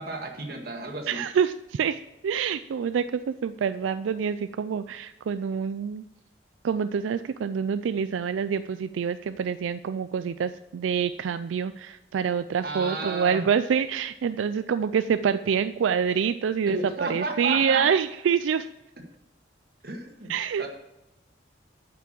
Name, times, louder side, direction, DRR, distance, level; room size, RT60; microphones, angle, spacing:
voice 1, 0.0-1.2 12.6-13.5 16.7-17.8 19.8-20.3 20.6-20.7, right 2 dB, 50° right, 3 dB, 1.8 m, -33 dB
voice 2, 1.1-6.0 6.6-18.7 20.3-20.6, right 7 dB, 90° right, 12 dB, 0.3 m, -26 dB
8.4 x 5.9 x 7.5 m, 0.97 s
head